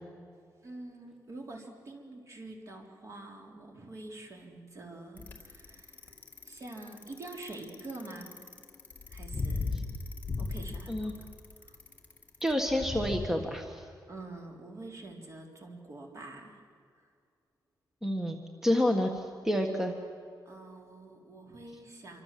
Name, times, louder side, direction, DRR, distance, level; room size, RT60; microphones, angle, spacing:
voice 1, 0.6-6.2 6.4-8.4 9.1-9.8 10.4-11.1 11.6-11.8 14.1-16.6 16.9-17.1 20.5-22.2, right 2 dB, 45° right, 2 dB, 3.7 m, -46 dB
Bicycle, 5.2-13.3, left 3 dB, 25° left, 2.2 m, -37 dB
voice 2, 12.4-13.8 18.0-19.9, left 1 dB, 5° right, 4 dB, 1.6 m, -29 dB
26.5 x 25.5 x 7.6 m, 2.3 s
wide cardioid pair, 160°, 7 cm